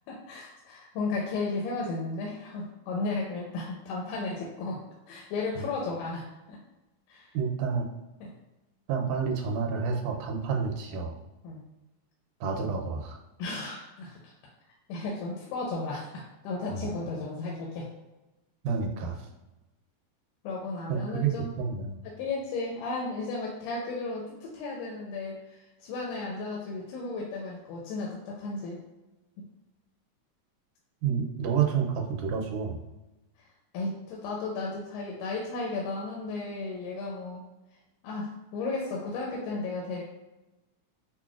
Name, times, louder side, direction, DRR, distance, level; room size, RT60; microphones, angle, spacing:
voice 1, 0.1-4.8 5.1-6.6 7.1-7.4 8.2-8.3 11.4-11.6 13.4-14.3 14.9-17.9 20.4-21.5 22.0-28.8 29.4-29.5 33.7-37.4 38.0-40.0, left 3 dB, 85° left, -3 dB, 2.1 m, -34 dB
voice 2, 7.3-7.9 8.9-11.1 12.4-13.2 16.7-16.9 18.6-19.3 20.9-21.3 21.6-22.0 31.0-32.8, right 6 dB, 80° right, 1 dB, 1.9 m, -29 dB
5.8 x 2.2 x 2.4 m, 1.0 s
omnidirectional pair, 3.6 m